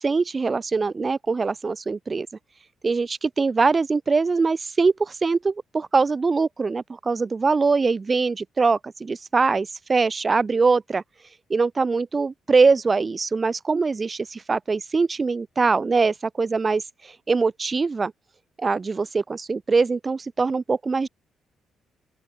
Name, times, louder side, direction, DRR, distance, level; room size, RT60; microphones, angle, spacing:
voice 1, 0.0-2.3 2.8-11.0 11.5-18.1 18.6-21.1, right 4 dB, 30° right, 3.2 m, -22 dB
open air
cardioid pair, 90°, 0 cm